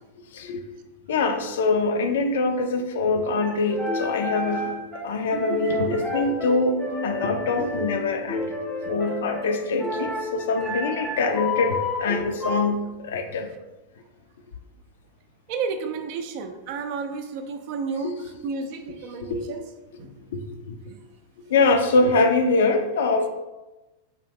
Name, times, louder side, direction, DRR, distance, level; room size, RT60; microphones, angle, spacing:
voice 1, 1.1-4.8 5.0-8.6 8.8-13.5 18.0-18.1 19.2-19.4 20.3-20.4 20.7-20.8 21.5-23.3, left 3 dB, 60° left, 6 dB, 0.4 m, -24 dB
sound 1, 3.2-12.7, left 1 dB, ahead, 0.6 m, -30 dB
voice 2, 15.5-19.6 20.0-20.2 20.9-21.0, right 4 dB, 45° right, 7 dB, 0.4 m, -32 dB
3.8 x 2.6 x 3.4 m, 1.1 s
figure-of-eight pair, 90°, 0 cm